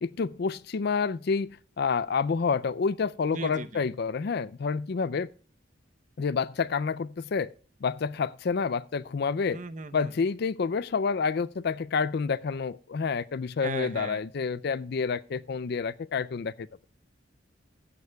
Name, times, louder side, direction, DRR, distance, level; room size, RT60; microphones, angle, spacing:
voice 1, 0.0-1.5 1.8-5.3 6.2-7.5 7.8-9.6 9.9-16.7, left 5 dB, 55° left, 0.4 m, -28 dB
voice 2, 3.3-3.8 9.5-10.1 13.6-14.2, right 3 dB, 40° right, 0.8 m, -37 dB
15.0 x 11.0 x 2.3 m
head